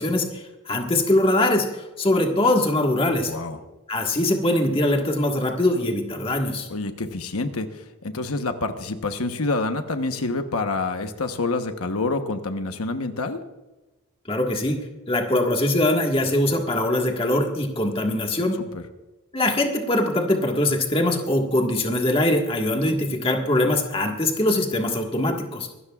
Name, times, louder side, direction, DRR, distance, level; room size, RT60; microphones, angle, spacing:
voice 1, 0.0-3.3 3.9-6.7 14.3-14.8 15.1-18.6 19.3-25.7, left 1 dB, 25° left, 2 dB, 1.6 m, -22 dB
voice 2, 3.2-3.6 6.7-13.4 18.7-18.8, left 3 dB, 85° left, 7 dB, 1.0 m, -27 dB
25.0 x 13.0 x 2.4 m, 1.1 s
head